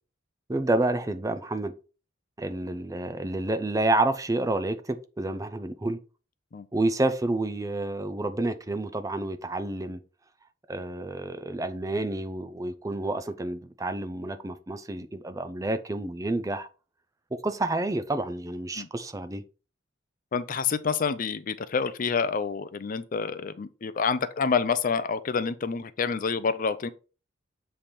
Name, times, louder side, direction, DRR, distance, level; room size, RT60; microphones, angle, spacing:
voice 1, 0.5-1.7 2.4-6.0 6.7-10.0 10.7-16.7 17.3-19.4, right 2 dB, 15° right, 0.5 m, -29 dB
voice 2, 20.3-26.9, left 5 dB, 45° left, 0.5 m, -28 dB
7.5 x 3.4 x 4.3 m
head